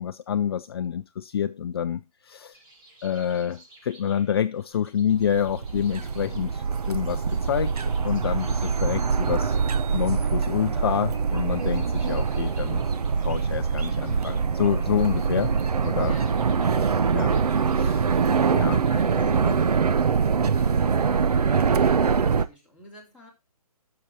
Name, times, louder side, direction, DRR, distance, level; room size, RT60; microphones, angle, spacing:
voice 1, 0.0-2.6 3.0-7.7 8.0-9.6 9.9-12.8 13.2-15.5 15.8-16.1 17.1-17.3 17.7-18.0 18.5-18.8 19.4-19.5, left 9 dB, 40° left, 0.5 m, -27 dB
sound 1, 2.5-19.9, right 2 dB, 35° right, 5.4 m, -54 dB
sound 2, 5.1-22.5, right 5 dB, 80° right, 0.9 m, -24 dB
voice 2, 16.0-16.3 18.8-19.5 20.3-23.3, left 3 dB, 5° right, 3.3 m, -47 dB
12.0 x 6.9 x 4.4 m
hypercardioid pair, 155°, 20 cm